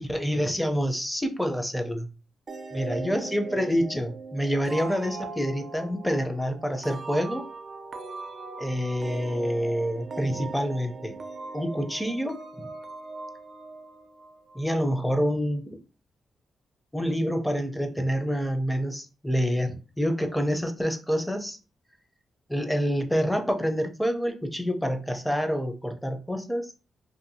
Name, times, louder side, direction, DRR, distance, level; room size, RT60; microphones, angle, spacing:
voice 1, 0.0-2.1 2.7-7.5 8.6-11.1 11.5-12.7 14.5-15.8 16.9-21.6 22.5-26.7, equal, 5° left, 5 dB, 0.5 m, -27 dB
sound 1, 2.5-14.9, right 3 dB, 45° right, 0.4 m, -40 dB
2.6 x 2.5 x 2.7 m, 0.34 s
cardioid pair, 90°, 0 cm